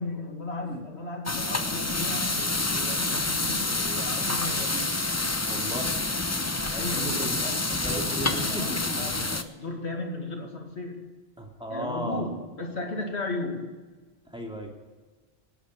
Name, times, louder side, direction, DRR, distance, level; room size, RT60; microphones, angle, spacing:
voice 1, 0.0-4.9 6.7-11.0 11.7-13.8, left 2 dB, 80° left, 3 dB, 2.4 m, -35 dB
sound 1, 1.3-9.4, left 2 dB, 20° left, 0.6 m, -28 dB
voice 2, 5.4-5.9 6.9-7.4 7.8-9.4 11.4-12.3 14.3-14.7, equal, 5° right, 0 dB, 2.6 m, -35 dB
17.0 x 8.6 x 6.6 m, 1.3 s
omnidirectional pair, 1.1 m